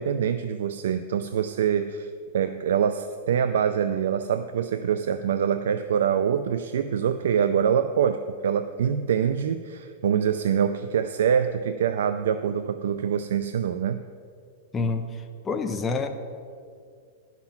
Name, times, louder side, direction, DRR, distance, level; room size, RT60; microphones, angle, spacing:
voice 1, 0.0-14.0, right 8 dB, 80° right, 10 dB, 0.4 m, -25 dB
voice 2, 14.7-16.1, left 4 dB, 10° left, 4 dB, 0.4 m, -28 dB
11.5 x 5.9 x 5.8 m, 2.2 s
supercardioid pair, 175°, 0 cm